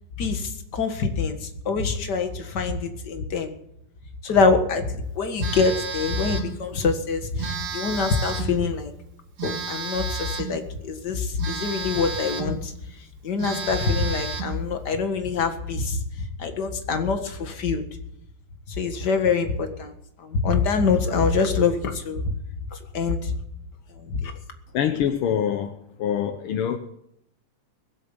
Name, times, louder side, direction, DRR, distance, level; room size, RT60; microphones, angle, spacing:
voice 1, 0.2-3.5 4.2-8.9 9.4-12.7 13.2-17.8 18.7-19.9 20.2-22.3 22.7-23.3 24.0-24.3, left 4 dB, 40° left, 6 dB, 1.9 m, -25 dB
Telephone, 5.4-6.6 7.4-8.6 9.4-10.6 11.4-12.6 13.0-13.1 13.4-14.6, right 5 dB, 70° right, 3.9 m, -32 dB
voice 2, 24.7-25.7 26.0-26.8, left 9 dB, 70° left, 8 dB, 1.3 m, -24 dB
21.0 x 8.4 x 7.2 m, 0.75 s
omnidirectional pair, 3.5 m